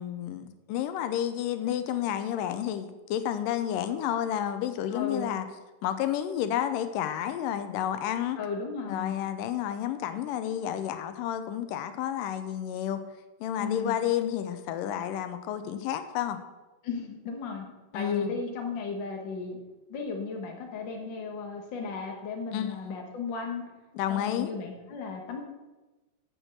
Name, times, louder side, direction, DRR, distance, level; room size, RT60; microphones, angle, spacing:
voice 1, 0.0-5.5 5.8-8.4 8.9-13.0 13.4-16.4 17.9-18.4 22.5-23.1 24.0-24.5, left 10 dB, 85° left, 10 dB, 2.3 m, -31 dB
voice 2, 4.9-5.3 8.4-9.1 13.6-14.0 16.8-17.6 17.9-19.6 19.9-23.6 24.1-25.4, left 5 dB, 55° left, 2 dB, 1.3 m, -35 dB
8.7 x 6.3 x 6.6 m, 1.1 s
omnidirectional pair, 3.9 m